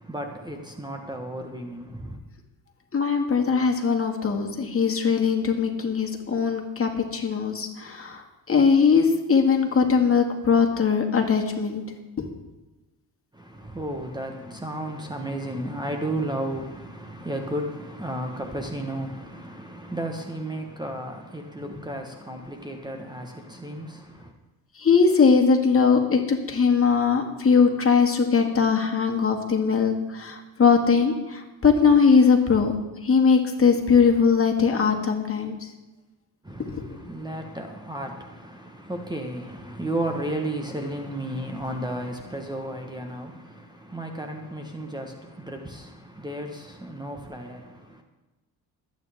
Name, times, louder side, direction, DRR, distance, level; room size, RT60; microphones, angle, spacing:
voice 1, 0.0-2.2 13.3-24.3 36.4-48.0, right 1 dB, 10° right, 1.3 m, -33 dB
voice 2, 2.9-11.8 12.2-12.3 21.6-21.8 24.8-32.7 33.0-35.6 36.7-36.8, left 5 dB, 35° left, 2.1 m, -20 dB
21.5 x 9.2 x 3.6 m
cardioid pair, 90°, 39 cm